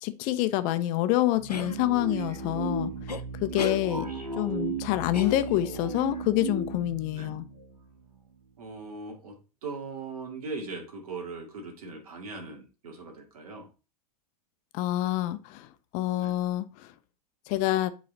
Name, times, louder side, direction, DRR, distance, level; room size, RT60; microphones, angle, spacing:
voice 1, 0.0-2.9 3.4-4.1 4.4-7.4 14.7-15.7 15.9-16.9 17.5-17.9, left 14 dB, 40° left, 0.8 m, -27 dB
sound 1, 1.3-8.5, right 3 dB, 85° right, 2.3 m, -36 dB
sound 2, 1.5-1.7 3.1-3.2 3.6-3.8 5.1-5.8, left 5 dB, 90° left, 0.6 m, -34 dB
voice 2, 8.6-9.4 9.6-13.7 16.2-16.4, right 3 dB, 65° right, 2.2 m, -40 dB
8.5 x 4.1 x 4.0 m
figure-of-eight pair, 95°, 20 cm